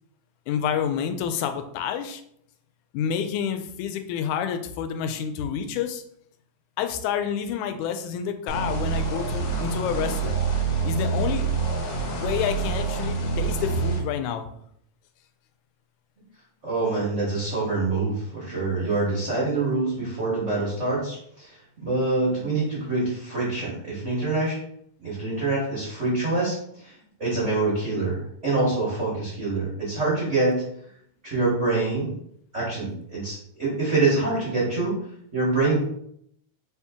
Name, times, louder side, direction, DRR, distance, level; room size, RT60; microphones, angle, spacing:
voice 1, 0.5-2.2 2.9-6.0 6.8-10.4 10.9-11.5 12.2-14.5, left 8 dB, 90° left, 7 dB, 2.0 m, -28 dB
sound 1, 8.5-14.0, right 5 dB, 70° left, 1.8 m, -26 dB
voice 2, 16.6-24.6 25.0-30.6 31.2-32.1 32.5-34.9 35.3-35.8, right 3 dB, 80° right, -6 dB, 0.6 m, -25 dB
4.4 x 2.8 x 3.5 m, 0.70 s
omnidirectional pair, 3.3 m